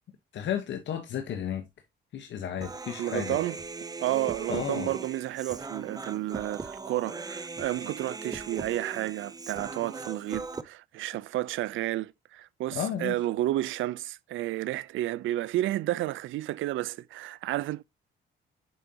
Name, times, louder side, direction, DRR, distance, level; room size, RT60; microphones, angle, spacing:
voice 1, 0.3-1.6 2.1-3.4 4.5-4.9 12.7-13.2, left 9 dB, 65° left, 1.1 m, -33 dB
Human voice, 2.6-10.6, right 3 dB, 20° right, 0.6 m, -39 dB
voice 2, 3.0-3.6 4.0-17.8, right 15 dB, 80° right, 0.5 m, -31 dB
8.2 x 5.1 x 2.8 m
cardioid pair, 90°, 20 cm